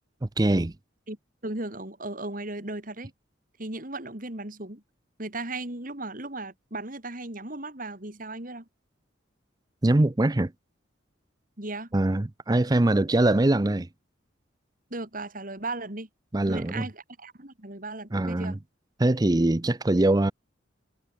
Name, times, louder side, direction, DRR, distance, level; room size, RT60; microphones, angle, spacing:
voice 1, 0.4-0.7 9.8-10.5 11.9-13.9 16.3-16.9 18.1-18.6 19.0-20.3, right 1 dB, 20° right, 0.5 m, -22 dB
voice 2, 1.4-3.1 3.6-4.8 5.2-8.7 11.6-11.9 14.9-16.1 16.5-18.6, right 2 dB, 45° right, 3.3 m, -36 dB
head